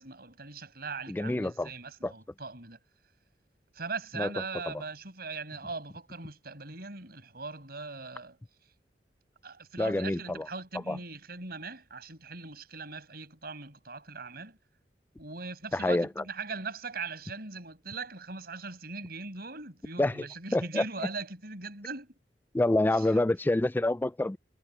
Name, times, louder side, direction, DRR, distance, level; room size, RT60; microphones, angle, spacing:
voice 1, 0.0-2.8 3.7-8.4 9.4-14.6 15.2-22.1 23.0-23.1, right 4 dB, 60° right, 6.0 m, -40 dB
voice 2, 1.1-1.7 2.0-2.1 4.1-4.3 4.7-4.8 9.8-10.5 10.9-11.0 15.7-16.2 20.0-20.8 22.5-24.4, left 1 dB, 10° left, 0.3 m, -27 dB
head